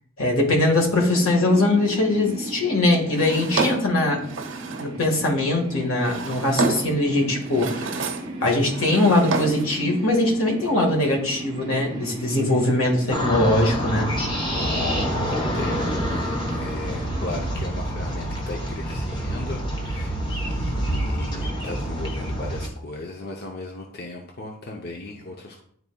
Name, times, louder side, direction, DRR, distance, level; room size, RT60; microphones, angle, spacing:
voice 1, 0.2-4.2 4.8-8.0 8.4-14.1, left 2 dB, 85° left, 1 dB, 1.6 m, -21 dB
sound 1, 1.1-17.5, right 2 dB, 20° right, 1.0 m, -37 dB
Drawer open or close, 3.1-5.0 5.8-7.0 7.4-8.3 8.6-9.8, right 3 dB, 65° right, 1.1 m, -28 dB
sound 2, 13.1-22.7, equal, 20° left, 1.0 m, -27 dB
voice 2, 14.5-25.6, left 2 dB, 50° left, 1 dB, 0.6 m, -36 dB
11.0 x 4.0 x 2.3 m, 0.65 s
head